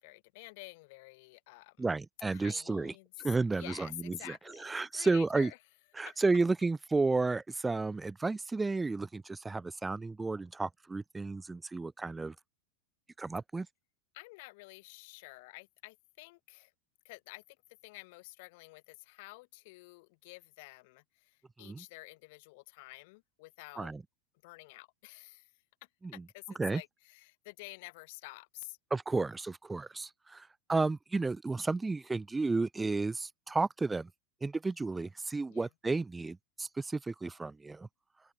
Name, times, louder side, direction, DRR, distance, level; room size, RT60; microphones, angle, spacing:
voice 1, 0.0-1.9 2.3-4.7 4.9-5.6 6.0-6.2 14.1-16.7 17.0-17.4 17.8-23.9 24.4-25.5 26.1-28.8 35.5-35.7, left 25 dB, 65° left, 2.7 m, -50 dB
voice 2, 1.8-2.9 3.2-4.4 4.6-5.5 6.0-12.3 13.2-13.7 21.6-21.8 23.8-24.0 26.6-26.8 28.9-34.1 34.4-37.9, right 3 dB, 10° right, 0.6 m, -32 dB
supercardioid pair, 120°, 0 cm